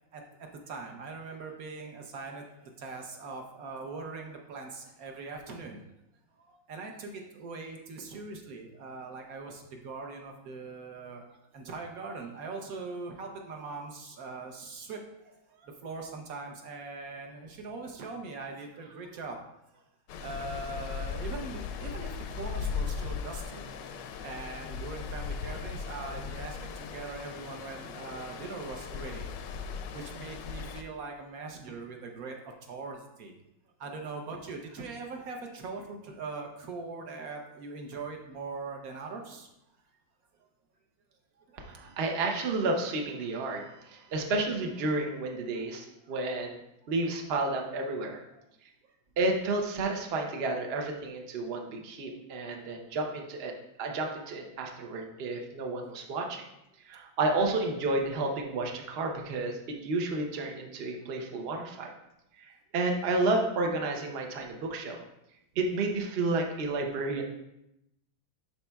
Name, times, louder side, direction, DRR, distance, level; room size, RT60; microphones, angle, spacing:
voice 1, 0.1-5.8 6.3-11.2 11.5-19.4 19.7-19.8 20.2-23.6 24.2-29.6 29.9-33.3 33.8-39.5 41.4-42.1 45.5-46.2 46.9-47.0, right 3 dB, 60° right, 3 dB, 1.1 m, -41 dB
Stream, 20.1-30.8, left 6 dB, 75° left, 1.1 m, -38 dB
voice 2, 41.6-46.6 46.9-48.2 49.2-53.5 53.8-56.5 56.8-61.9 62.4-65.0 65.6-67.2, right 2 dB, 85° right, 2 dB, 0.5 m, -31 dB
11.0 x 4.2 x 2.3 m, 0.85 s
omnidirectional pair, 2.1 m